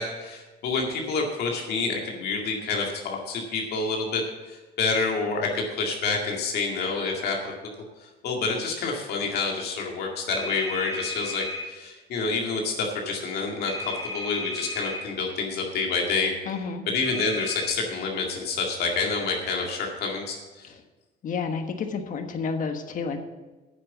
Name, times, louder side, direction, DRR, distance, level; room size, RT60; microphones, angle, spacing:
voice 1, 0.0-7.5 8.0-16.3 16.9-20.7, left 4 dB, 70° left, 0 dB, 2.1 m, -28 dB
sound 1, 10.3-11.7 13.7-15.0 17.0-17.7, left 2 dB, 15° left, 2.5 m, -34 dB
voice 2, 16.4-16.8 20.6-20.8 21.2-23.2, left 5 dB, 50° left, 7 dB, 1.4 m, -30 dB
9.6 x 7.6 x 7.2 m, 1.2 s
cardioid pair, 110°, 17 cm